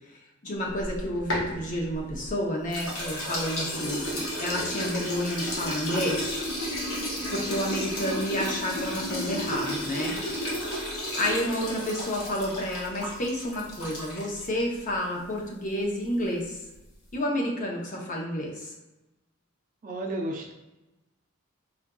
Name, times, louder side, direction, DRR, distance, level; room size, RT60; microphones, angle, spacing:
voice 1, 0.4-6.4 7.3-10.2 11.2-16.6 17.1-18.7, equal, 40° left, -1 dB, 0.7 m, -30 dB
sound 1, 0.7-2.3 2.7-14.5, equal, 80° left, 1.1 m, -32 dB
voice 2, 19.8-20.5, right 1 dB, 40° right, 1 dB, 0.5 m, -32 dB
4.6 x 2.5 x 2.2 m, 1.0 s
head